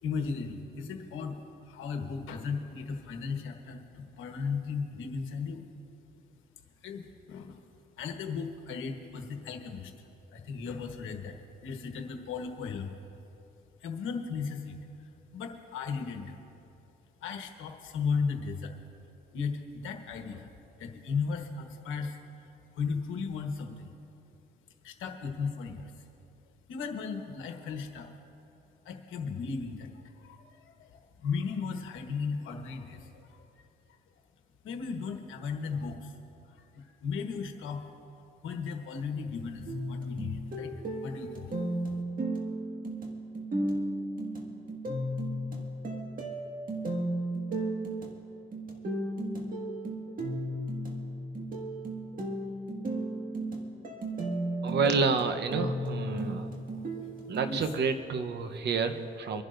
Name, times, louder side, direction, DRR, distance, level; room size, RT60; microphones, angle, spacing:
voice 1, 0.0-1.4 1.6-5.6 6.8-7.6 8.0-9.9 10.3-11.3 11.6-12.9 13.8-14.8 15.3-16.3 17.2-18.7 19.3-20.5 20.8-22.2 22.7-23.9 24.8-25.9 26.7-28.1 28.8-29.9 30.2-33.5 34.6-36.1 36.7-37.9 38.4-40.7 41.0-41.5 57.5-57.7, left 5 dB, 85° left, 4 dB, 1.2 m, -36 dB
sound 1, 39.7-57.6, right 1 dB, 45° right, 1.8 m, -34 dB
voice 2, 54.6-56.5 57.3-59.4, right 4 dB, 60° right, 8 dB, 0.9 m, -29 dB
26.5 x 11.0 x 2.6 m, 2.8 s
cardioid pair, 90°, 20 cm